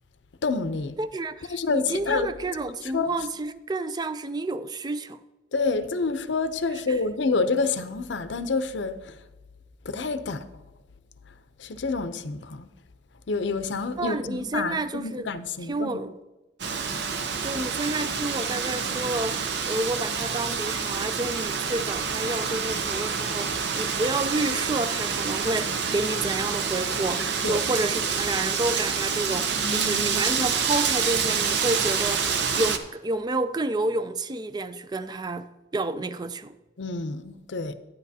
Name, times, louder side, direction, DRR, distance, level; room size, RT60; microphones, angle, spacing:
voice 1, 0.4-0.9 1.5-2.3 2.8-3.1 5.5-9.2 9.8-10.5 11.6-12.7 13.3-16.0 27.4-27.6 29.6-30.2 36.8-37.7, left 4 dB, 70° left, 0.6 m, -28 dB
voice 2, 1.0-5.2 14.0-15.3 15.7-16.1 17.4-36.5, right 2 dB, 20° right, 0.4 m, -30 dB
Wind, 16.6-32.8, right 6 dB, 60° right, 0.7 m, -27 dB
11.0 x 9.8 x 2.8 m
head